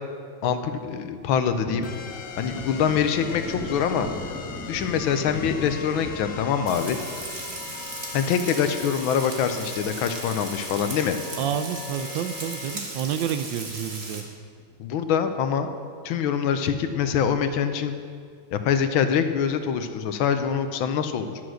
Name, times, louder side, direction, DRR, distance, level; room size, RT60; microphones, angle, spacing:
voice 1, 0.4-1.9 2.4-4.1 4.7-7.0 8.1-11.2 14.8-15.7 16.0-17.9 18.5-21.4, left 7 dB, 80° left, 9 dB, 1.5 m, -24 dB
Thunder, 1.7-12.0 12.3-12.4 12.8-14.3 14.6-14.7 15.1-15.9 16.3-16.4 16.7-16.8 19.2-19.8, left 1 dB, 10° left, 0.7 m, -41 dB
sound 1, 1.8-12.8, left 6 dB, 55° left, 1.1 m, -40 dB
Frying (food), 6.7-14.2, right 2 dB, 35° right, 1.5 m, -37 dB
voice 2, 11.4-14.2, right 9 dB, 75° right, 10 dB, 1.2 m, -29 dB
11.5 x 7.8 x 6.3 m, 2.1 s
omnidirectional pair, 2.2 m